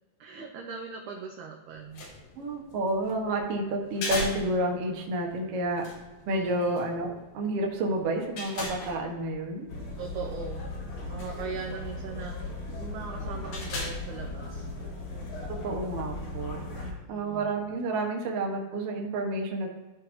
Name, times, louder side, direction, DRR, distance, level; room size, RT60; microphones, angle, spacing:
voice 1, 0.2-2.0 6.3-6.7 10.0-10.7 11.0-14.7 16.8-17.5, right 5 dB, 80° right, 1 dB, 1.8 m, -40 dB
sound 1, 1.7-15.2, left 2 dB, 75° left, 3.1 m, -41 dB
voice 2, 2.3-5.9 6.3-9.7 15.6-19.7, right 2 dB, 60° right, 1 dB, 1.6 m, -30 dB
sound 2, 9.7-16.9, left 2 dB, 50° left, 2.4 m, -37 dB
13.5 x 4.5 x 3.1 m, 1.2 s
omnidirectional pair, 4.2 m